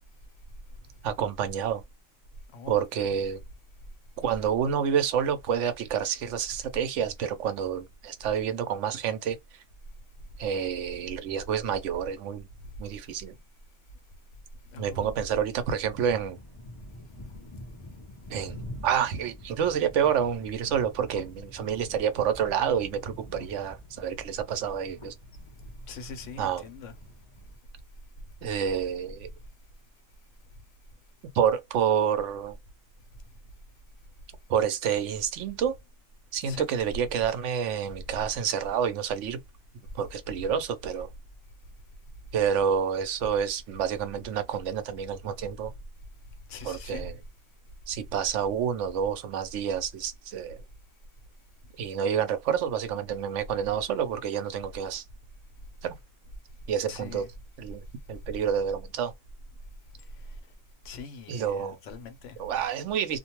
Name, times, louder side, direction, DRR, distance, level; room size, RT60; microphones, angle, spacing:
voice 1, 1.0-1.8 2.7-3.4 4.2-9.4 10.4-12.5 12.8-13.4 14.8-16.4 18.3-18.6 18.8-25.1 26.4-26.7 28.4-29.3 31.3-32.6 34.5-35.7 36.3-39.4 39.9-41.1 42.3-45.7 46.6-47.2 47.9-50.6 51.8-55.0 55.8-55.9 56.7-57.2 57.6-59.1 61.3-61.8 62.4-63.2, right 8 dB, 80° right, 0.9 m, -28 dB
voice 2, 2.5-3.2 14.7-15.2 25.9-26.9 36.5-36.6 46.5-47.0 56.9-57.3 60.2-60.4 60.8-62.4, left 3 dB, 85° left, 1.0 m, -42 dB
sound 1, 15.8-27.6, left 1 dB, 35° left, 0.5 m, -46 dB
2.5 x 2.2 x 2.9 m
omnidirectional pair, 1.2 m